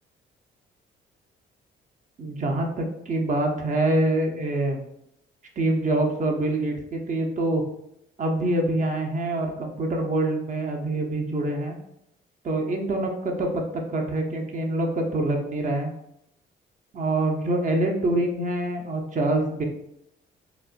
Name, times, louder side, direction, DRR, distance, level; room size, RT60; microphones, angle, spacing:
voice 1, 2.2-4.8 5.6-7.6 8.2-11.8 12.4-13.6 13.9-15.9 16.9-19.6, right 1 dB, 40° right, 2 dB, 0.7 m, -25 dB
4.2 x 2.0 x 2.5 m, 0.78 s
cardioid pair, 90°, 20 cm